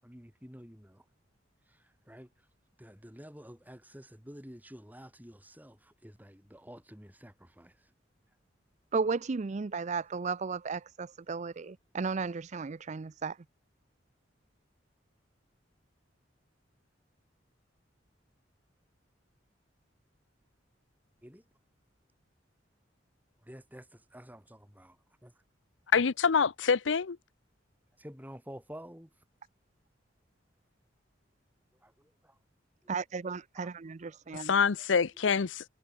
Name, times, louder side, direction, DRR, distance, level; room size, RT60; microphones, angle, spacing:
voice 1, 0.0-1.0 1.7-1.8 2.1-2.3 2.8-7.9 21.2-21.4 23.4-25.0 25.2-25.3 28.0-29.1 31.8-32.4 33.5-33.7 34.1-34.2, equal, 10° right, 6.7 m, -50 dB
voice 2, 8.9-13.3 32.9-34.5, right 4 dB, 40° right, 0.5 m, -34 dB
voice 3, 25.9-27.2 34.3-35.6, left 6 dB, 80° left, 0.6 m, -26 dB
head